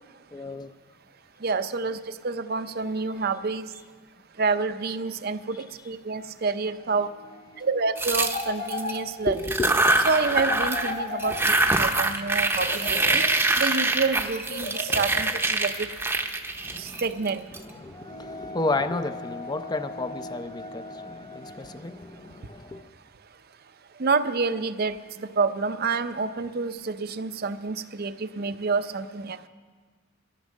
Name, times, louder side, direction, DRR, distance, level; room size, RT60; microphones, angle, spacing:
voice 1, 0.3-0.7 7.5-7.7 9.0-9.7 16.6-17.0 17.5-22.9, left 3 dB, 20° left, 0.5 m, -32 dB
voice 2, 1.4-2.0 2.2-3.7 4.4-7.1 7.6-9.3 10.1-11.3 11.7-13.2 13.6-15.9 17.0-17.4 24.0-24.9 25.4-29.4, right 4 dB, 50° right, 0.6 m, -28 dB
sound 1, 8.0-9.0 9.4-10.9 11.2-17.6, right 2 dB, 10° right, 0.8 m, -24 dB
sound 2, 8.2-9.5 10.3-11.8 12.5-13.7 14.5-15.7, left 3 dB, 55° left, 1.6 m, -35 dB
14.0 x 13.0 x 6.4 m
head